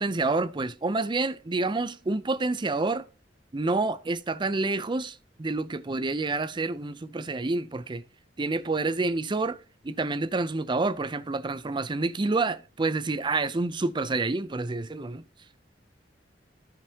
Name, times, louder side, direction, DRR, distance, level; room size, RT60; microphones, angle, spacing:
voice 1, 0.0-3.0 3.5-8.0 8.4-9.6 9.8-15.2, right 3 dB, 25° right, 0.5 m, -28 dB
15.0 x 5.2 x 2.8 m
head